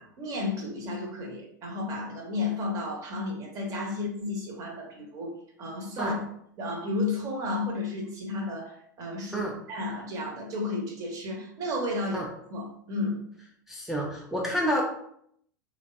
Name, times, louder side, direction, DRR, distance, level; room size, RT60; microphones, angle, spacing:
voice 1, 0.2-6.3 6.6-13.2, left 2 dB, 35° right, 0 dB, 0.8 m, -33 dB
voice 2, 13.7-14.8, equal, 5° right, -4 dB, 0.3 m, -29 dB
3.2 x 2.1 x 2.4 m, 0.68 s
figure-of-eight pair, 90°, 10 cm